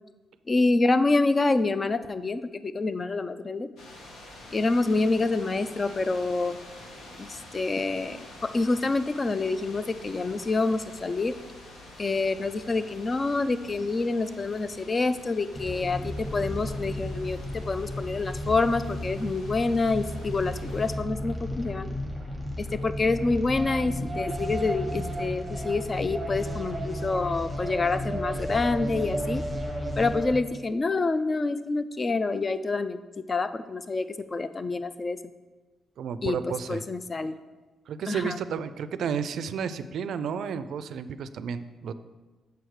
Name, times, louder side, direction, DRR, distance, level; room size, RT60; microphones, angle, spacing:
voice 1, 0.5-3.7 4.5-6.6 7.2-11.3 12.0-21.9 22.6-29.4 30.0-35.2 36.2-37.4 38.1-38.4, left 3 dB, 25° left, 12 dB, 0.3 m, -27 dB
sound 1, 3.8-21.0, left 1 dB, 85° left, 1.5 m, -47 dB
sound 2, 15.5-30.3, equal, ahead, 1.3 m, -33 dB
voice 2, 36.0-36.8 37.9-41.9, right 7 dB, 65° right, 12 dB, 0.4 m, -32 dB
6.8 x 4.6 x 6.5 m, 1.3 s
cardioid pair, 150°, 0 cm